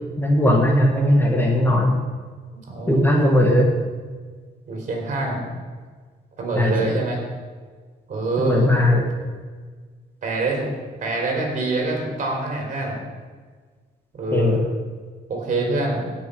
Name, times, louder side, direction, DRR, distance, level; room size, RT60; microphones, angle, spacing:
voice 1, 0.2-2.0 2.9-3.7 6.5-7.0 8.4-9.1 14.3-14.6, left 1 dB, 15° left, 0 dB, 1.4 m, -18 dB
voice 2, 2.7-3.4 4.7-5.5 6.4-7.2 8.1-8.7 10.2-10.7 11.0-13.0 14.2-14.6 15.3-16.1, right 2 dB, 45° right, 0 dB, 4.0 m, -25 dB
16.5 x 6.2 x 5.3 m, 1.5 s
cardioid pair, 145°, 17 cm